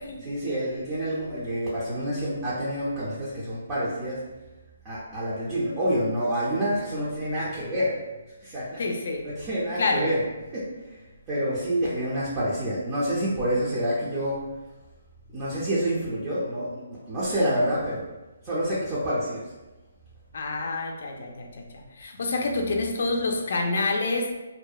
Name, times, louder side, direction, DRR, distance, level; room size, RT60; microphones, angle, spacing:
voice 1, 0.2-4.2 4.8-8.0 8.4-8.8 9.2-10.2 10.5-11.0 11.3-14.5 15.3-18.0 18.4-19.5, equal, 20° right, -9 dB, 0.5 m, -28 dB
voice 2, 8.8-9.2 9.8-10.1 20.3-24.4, left 3 dB, 60° left, 2 dB, 0.4 m, -27 dB
2.6 x 2.1 x 2.3 m, 1.1 s
hypercardioid pair, 160°, 0 cm